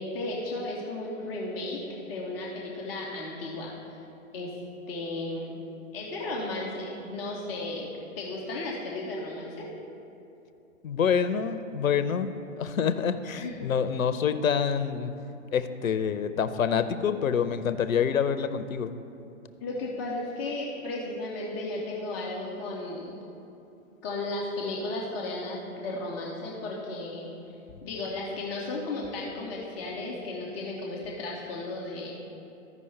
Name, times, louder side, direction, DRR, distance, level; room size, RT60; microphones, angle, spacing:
voice 1, 0.0-3.7 4.3-4.5 4.9-5.6 5.9-7.9 8.2-9.7 13.3-13.7 19.6-23.2 24.0-27.3 27.8-32.1, left 2 dB, 5° left, -10 dB, 0.3 m, -34 dB
voice 2, 10.8-12.3 12.6-15.1 15.5-18.9, left 7 dB, 80° left, 11 dB, 0.7 m, -26 dB
14.5 x 5.3 x 3.2 m, 2.7 s
figure-of-eight pair, 125°, 40 cm